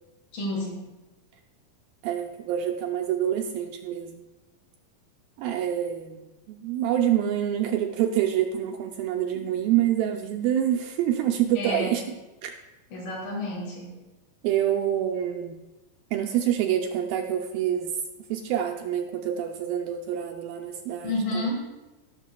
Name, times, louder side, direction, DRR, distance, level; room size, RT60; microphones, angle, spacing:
voice 1, 0.3-0.8 9.3-9.4 11.6-11.9 12.9-13.9 21.0-21.6, left 1 dB, 65° left, -1 dB, 3.1 m, -30 dB
voice 2, 2.0-4.3 5.4-12.0 12.4-12.5 14.4-15.6 16.1-17.9 18.3-21.5, right 10 dB, 80° right, 3 dB, 2.1 m, -26 dB
15.5 x 6.6 x 2.2 m, 1.1 s
omnidirectional pair, 4.4 m